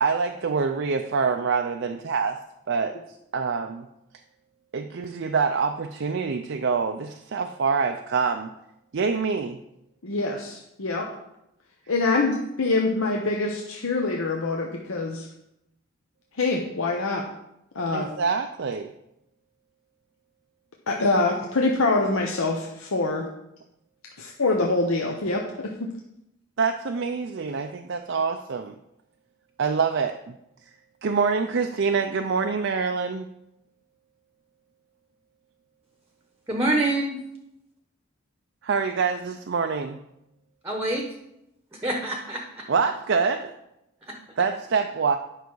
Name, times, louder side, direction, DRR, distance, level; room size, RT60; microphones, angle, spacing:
voice 1, 0.0-2.4 2.7-3.0 3.3-3.9 4.7-8.5 8.9-9.6 17.9-18.9 26.6-28.7 29.6-30.2 31.0-33.3 38.6-40.0 42.7-43.5 44.4-45.2, right 5 dB, 55° right, 5 dB, 0.4 m, -25 dB
voice 2, 10.0-11.1 11.9-15.3 16.4-17.3 17.7-18.1 20.9-23.3 24.2-25.9, left 3 dB, 75° left, 0 dB, 0.9 m, -25 dB
voice 3, 36.5-37.2 40.6-41.0 41.8-42.6 44.1-44.2, right 2 dB, 10° right, 1 dB, 0.9 m, -26 dB
9.2 x 5.8 x 4.7 m, 0.84 s
head